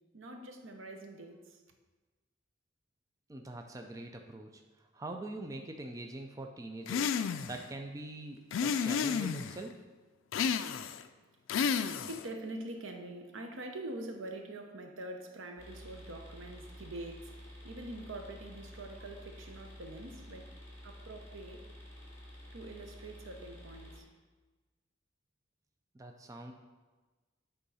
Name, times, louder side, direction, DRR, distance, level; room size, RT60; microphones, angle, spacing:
voice 1, 0.1-1.6 11.7-20.5 20.8-21.7 22.5-24.1, right 1 dB, 85° right, 4 dB, 0.8 m, -45 dB
voice 2, 3.3-7.1 7.4-9.8 25.9-26.5, right 2 dB, 15° right, 3 dB, 0.4 m, -44 dB
sound 1, 6.9-7.6 8.5-9.6 10.3-11.0 11.5-12.3, left 6 dB, 80° left, 0.3 m, -31 dB
sound 2, 15.6-24.0, equal, 15° left, 2.1 m, -50 dB
8.2 x 3.7 x 5.5 m, 1.3 s
head